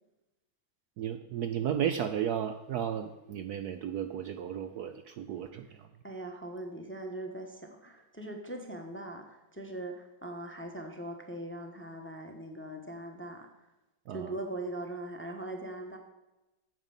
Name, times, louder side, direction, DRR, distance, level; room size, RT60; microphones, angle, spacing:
voice 1, 1.0-5.8 14.1-14.3, right 9 dB, 65° right, 8 dB, 1.0 m, -34 dB
voice 2, 6.0-13.5 14.1-16.0, right 1 dB, 10° left, 4 dB, 1.0 m, -41 dB
9.1 x 8.2 x 7.1 m, 0.98 s
omnidirectional pair, 2.1 m